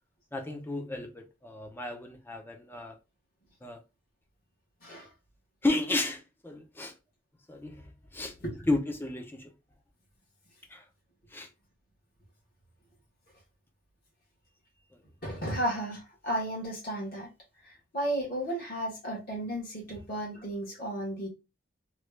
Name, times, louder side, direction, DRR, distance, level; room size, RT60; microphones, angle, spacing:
voice 1, 0.3-3.0 3.6-3.8 5.6-6.9 7.5-8.4 8.7-9.5 10.7-10.9 11.3-11.5 14.9-15.0, left 2 dB, 10° left, 0.5 m, -33 dB
voice 2, 15.2-17.3 17.9-21.3, right 1 dB, 45° left, 1.3 m, -33 dB
3.1 x 2.4 x 3.2 m
head